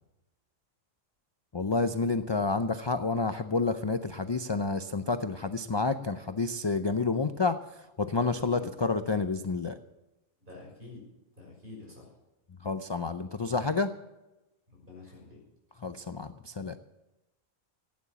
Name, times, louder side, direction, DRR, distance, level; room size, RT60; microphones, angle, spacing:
voice 1, 1.5-7.6 8.0-9.8 12.6-13.9 15.8-16.8, left 3 dB, 45° left, 9 dB, 0.3 m, -29 dB
voice 2, 10.4-11.0 11.4-12.1 14.8-15.4, left 3 dB, 40° right, -2 dB, 6.2 m, -48 dB
15.5 x 9.6 x 7.0 m, 1.0 s
omnidirectional pair, 1.3 m